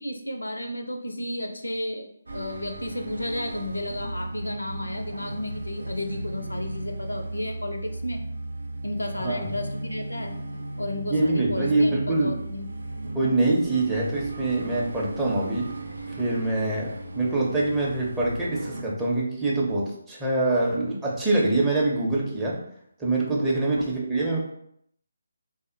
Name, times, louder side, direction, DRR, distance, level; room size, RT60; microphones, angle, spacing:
voice 1, 0.0-8.2 8.8-10.4 10.8-12.7, left 1 dB, 80° left, 5 dB, 0.4 m, -33 dB
sound 1, 2.3-18.8, right 2 dB, 65° right, 0.4 m, -36 dB
voice 2, 11.1-12.3 13.1-15.7 16.2-22.6 23.0-24.5, right 2 dB, 10° right, -6 dB, 0.6 m, -24 dB
3.5 x 2.0 x 2.6 m, 0.69 s
figure-of-eight pair, 145°, 0 cm